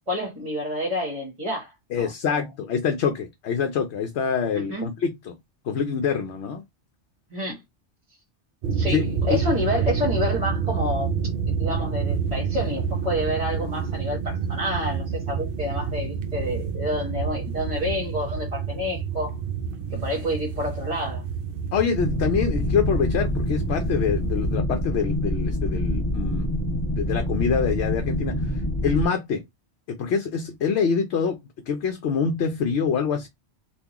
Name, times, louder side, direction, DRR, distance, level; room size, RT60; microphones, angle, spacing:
voice 1, 0.1-2.5 4.5-4.9 7.3-7.6 8.7-11.1 11.5-19.4 19.9-21.2, left 1 dB, 35° right, 1.3 m, -29 dB
voice 2, 1.9-5.3 5.6-6.6 8.9-9.0 9.3-9.4 21.7-26.5 27.0-29.4 29.9-31.4 31.7-33.3, left 6 dB, 70° left, 0.9 m, -25 dB
sound 1, 8.6-24.6, right 6 dB, 60° right, 0.7 m, -28 dB
sound 2, 22.0-29.0, left 1 dB, 15° left, 1.6 m, -26 dB
3.6 x 2.5 x 2.9 m
omnidirectional pair, 1.2 m